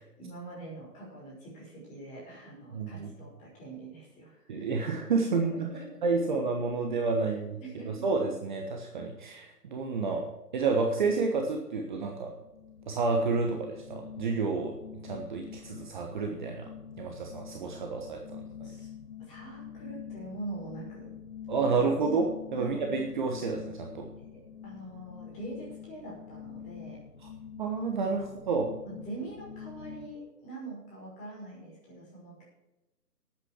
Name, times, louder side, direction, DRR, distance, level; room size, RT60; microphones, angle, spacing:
voice 1, 0.2-4.7 5.3-5.9 7.6-8.1 18.6-18.9 19.2-21.1 21.7-21.8 22.5-23.0 24.2-27.0 28.4-32.4, right 2 dB, 15° left, -4 dB, 5.5 m, -44 dB
voice 2, 2.7-3.1 4.5-5.7 6.0-7.6 7.8-10.3 10.5-12.3 12.9-14.7 15.0-16.6 17.0-18.7 21.5-24.1 27.6-28.7, right 4 dB, 30° right, 2 dB, 1.3 m, -30 dB
sound 1, 12.2-30.1, left 8 dB, 55° left, 2.0 m, -46 dB
12.5 x 8.8 x 6.0 m, 0.99 s
figure-of-eight pair, 150°, 48 cm